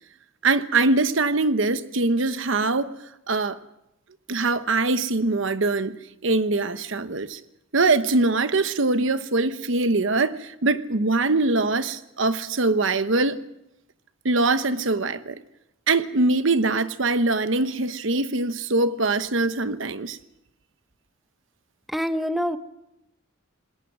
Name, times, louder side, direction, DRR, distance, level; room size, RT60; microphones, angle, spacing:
voice 1, 0.4-2.9 3.3-3.6 4.3-6.0 6.2-7.4 7.7-13.4 14.2-15.4 15.9-20.2, right 3 dB, 65° right, 1.0 m, -23 dB
voice 2, 21.9-22.6, equal, ahead, 0.9 m, -25 dB
26.5 x 20.0 x 6.1 m
head